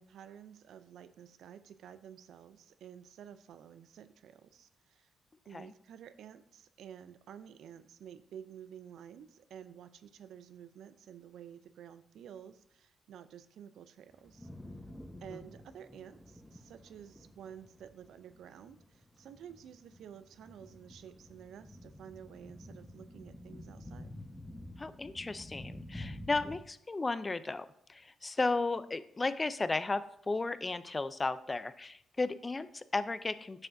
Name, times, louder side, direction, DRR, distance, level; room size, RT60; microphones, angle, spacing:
voice 1, 0.0-5.1 5.5-14.5 15.2-24.1, right 9 dB, 75° right, 12 dB, 0.4 m, -51 dB
sound 1, 14.1-26.6, left 1 dB, 10° left, 1.1 m, -50 dB
voice 2, 24.8-33.7, left 3 dB, 30° left, 14 dB, 0.5 m, -34 dB
9.6 x 6.8 x 2.6 m, 0.72 s
supercardioid pair, 50°, 0 cm